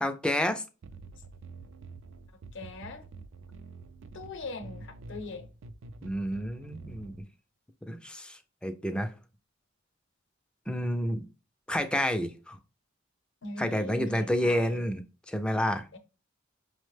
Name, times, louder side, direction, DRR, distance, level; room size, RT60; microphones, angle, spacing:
voice 1, 0.0-0.6 6.0-7.2 7.8-9.1 10.7-11.3 11.7-12.6 13.6-15.9, equal, 5° left, 0.4 m, -30 dB
sound 1, 0.8-7.2, right 3 dB, 65° right, 0.4 m, -47 dB
voice 2, 2.3-3.1 4.1-5.5 6.8-7.0 13.4-14.8 15.9-16.0, left 3 dB, 65° left, 0.7 m, -41 dB
5.7 x 2.1 x 3.2 m
head